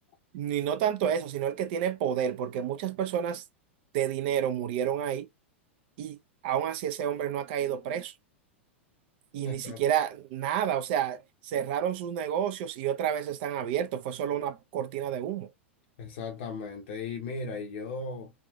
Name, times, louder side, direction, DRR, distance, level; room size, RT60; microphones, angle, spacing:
voice 1, 0.3-3.4 3.9-5.3 6.0-6.2 6.4-8.1 9.3-15.5, right 9 dB, 55° right, 0.6 m, -30 dB
voice 2, 9.4-9.8 16.0-18.3, left 4 dB, 55° left, 0.7 m, -37 dB
3.5 x 2.5 x 2.3 m
figure-of-eight pair, 95°, 7 cm